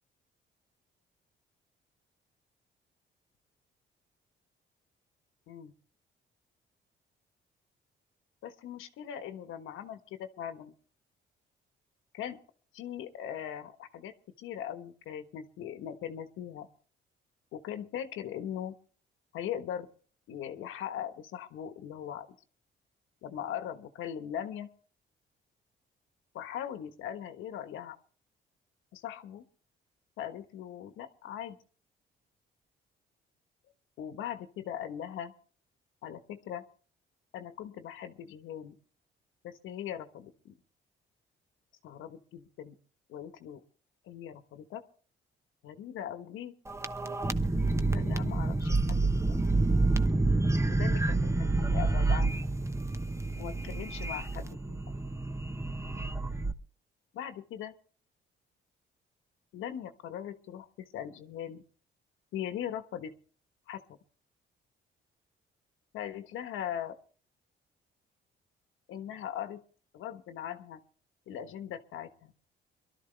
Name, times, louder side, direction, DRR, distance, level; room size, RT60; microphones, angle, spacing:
voice 1, 8.4-10.7 12.1-12.4 12.7-14.1 14.4-16.7 17.5-18.8 19.3-19.9 20.3-22.3 23.2-24.7 26.3-28.0 28.9-29.4 30.2-31.6 34.0-35.3 36.0-36.6 37.3-38.7 39.4-40.6 41.8-42.7 43.1-43.6 44.0-44.8 45.6-46.5 47.9-49.3 50.7-52.3 53.4-54.8 57.1-57.7 59.5-61.6 62.3-63.1 63.7-63.8 65.9-67.0 68.9-69.6 69.9-70.8 71.3-72.3, left 10 dB, 85° left, 9 dB, 1.3 m, -40 dB
sound 1, 46.7-56.5, right 2 dB, 15° right, 0.9 m, -28 dB
23.0 x 12.5 x 3.3 m, 0.42 s
cardioid pair, 90°, 20 cm